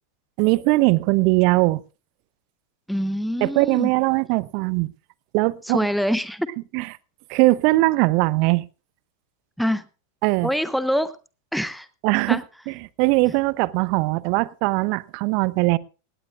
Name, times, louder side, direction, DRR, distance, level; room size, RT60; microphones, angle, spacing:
voice 1, 0.4-1.8 3.4-4.9 5.3-5.9 6.7-6.9 7.3-8.6 10.2-10.5 12.0-12.4 12.7-15.8, right 22 dB, 45° right, 0.7 m, -20 dB
voice 2, 2.9-3.9 5.6-6.5 9.6-9.8 10.4-11.1 11.5-11.9 12.3-12.4, equal, ahead, 0.9 m, -24 dB
18.0 x 17.5 x 2.4 m
figure-of-eight pair, 90°, 0 cm